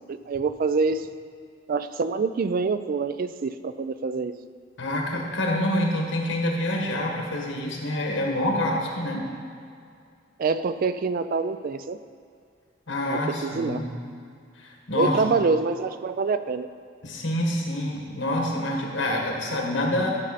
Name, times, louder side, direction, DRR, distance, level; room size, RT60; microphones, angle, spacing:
voice 1, 0.1-1.1 1.7-4.3 10.4-12.0 13.1-13.8 14.9-16.7, right 4 dB, 50° right, 11 dB, 0.4 m, -26 dB
voice 2, 4.8-9.3 12.9-13.9 14.6-15.3 17.0-20.1, left 1 dB, 85° left, 0 dB, 1.5 m, -27 dB
12.0 x 5.5 x 4.1 m, 2.3 s
head